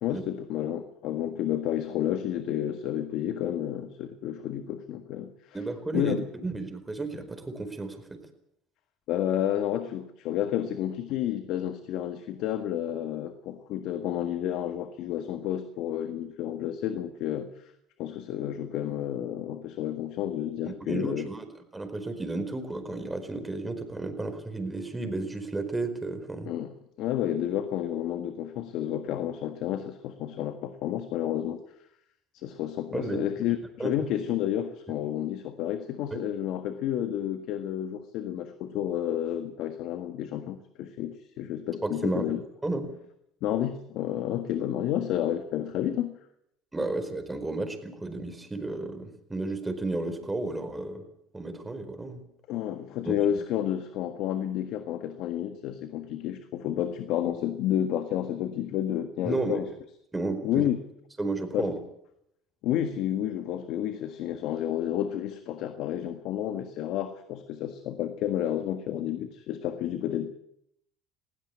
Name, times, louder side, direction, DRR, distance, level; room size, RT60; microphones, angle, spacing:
voice 1, 0.0-5.6 5.9-6.2 9.1-17.7 18.0-21.3 26.5-31.6 32.3-42.4 43.4-46.2 52.5-59.7 60.4-60.8 61.5-61.7 62.6-70.3, left 11 dB, 65° left, 8 dB, 1.6 m, -30 dB
voice 2, 5.5-8.2 20.6-21.4 21.7-26.5 32.9-33.2 33.8-34.1 36.1-36.2 41.8-42.3 42.6-42.9 46.7-51.0 51.3-52.2 53.0-53.2 59.2-59.6 60.1-60.7 61.2-61.8, right 2 dB, 15° right, 7 dB, 4.7 m, -33 dB
20.5 x 16.5 x 8.5 m, 0.76 s
supercardioid pair, 85°, 0 cm